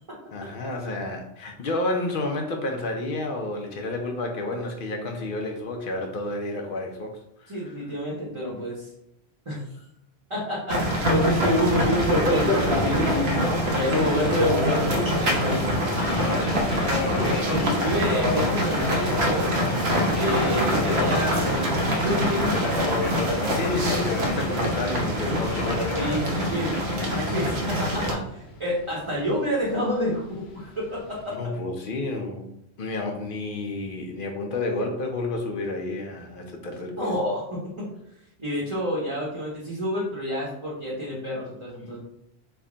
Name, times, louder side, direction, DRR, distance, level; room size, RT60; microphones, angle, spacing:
voice 1, 0.3-7.7 16.1-18.2 20.2-20.6 23.5-25.9 31.4-32.5 32.8-37.1, left 2 dB, 60° left, 3 dB, 0.7 m, -31 dB
voice 2, 7.5-8.9 9.5-9.7 10.3-13.3 13.7-15.7 17.5-19.6 20.1-23.1 25.9-31.5 37.0-37.9 38.4-42.0, equal, 30° right, -6 dB, 0.8 m, -29 dB
sound 1, 10.7-28.1, equal, 75° right, 1.0 m, -24 dB
Subway metro underground, 13.6-31.3, left 3 dB, 80° left, 1.0 m, -35 dB
3.3 x 2.1 x 3.7 m, 0.77 s
omnidirectional pair, 1.1 m